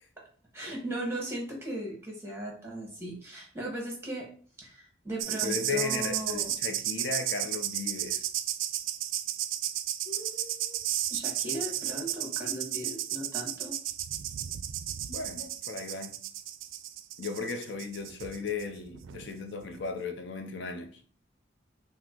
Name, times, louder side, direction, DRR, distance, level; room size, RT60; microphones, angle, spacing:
voice 1, 0.5-4.3 4.6-6.5 10.0-10.8 11.1-13.8, right 1 dB, 15° right, 1.2 m, -37 dB
sound 1, 5.2-19.3 19.6-19.9, right 12 dB, 85° right, 0.4 m, -33 dB
voice 2, 5.4-8.3 15.1-16.1 17.2-21.0, left 4 dB, 65° left, 0.6 m, -36 dB
5.8 x 2.1 x 3.7 m
head